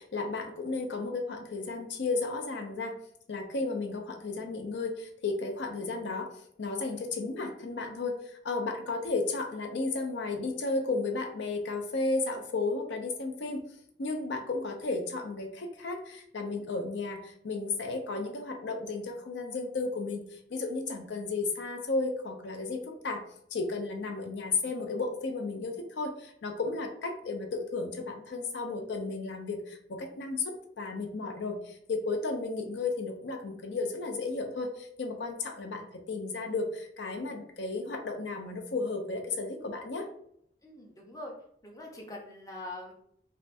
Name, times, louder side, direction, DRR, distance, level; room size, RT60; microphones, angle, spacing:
voice 1, 0.0-3.0 3.3-6.3 6.6-13.6 14.0-23.2 23.5-40.1, left 3 dB, 85° left, 4 dB, 0.5 m, -33 dB
voice 2, 40.6-41.3 41.6-42.9, left 1 dB, 20° left, 0 dB, 0.5 m, -43 dB
3.3 x 2.4 x 2.5 m, 0.69 s
head